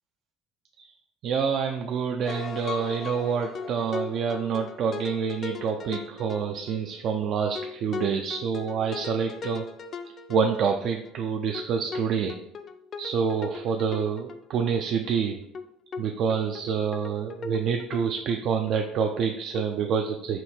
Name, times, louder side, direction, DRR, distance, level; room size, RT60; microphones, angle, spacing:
voice 1, 1.2-9.6 10.3-12.4 13.0-15.4 16.0-20.4, right 6 dB, 55° right, 4 dB, 0.4 m, -27 dB
sound 1, 2.2-7.1 7.6-11.1 11.5-14.8 15.1-15.2 15.5-15.7 15.9-16.0 16.3-18.7 19.1-19.2 19.5-19.6, left 4 dB, 40° left, 0.4 m, -38 dB
4.4 x 2.8 x 4.3 m, 0.78 s
cardioid pair, 125°, 0 cm